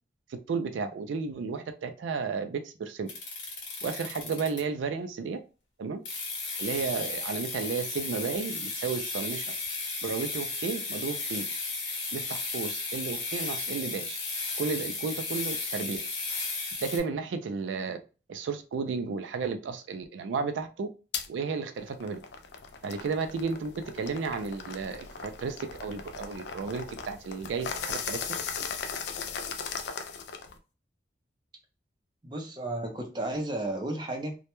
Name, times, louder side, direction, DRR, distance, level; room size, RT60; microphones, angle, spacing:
voice 1, 0.3-3.1 3.8-5.4 5.8-6.0 6.6-9.4 10.0-11.4 12.1-14.2 14.6-16.0 16.8-18.0 18.3-20.9 21.3-22.2 22.8-28.2, right 5 dB, 80° right, 0.3 m, -33 dB
sound 1, 3.1-4.9 6.1-17.0, left 3 dB, 85° left, 0.7 m, -34 dB
sound 2, 21.1-21.3 21.8-30.6, left 6 dB, 60° left, 0.3 m, -38 dB
voice 2, 32.2-34.4, right 1 dB, 25° right, 0.5 m, -33 dB
2.1 x 2.1 x 2.9 m
head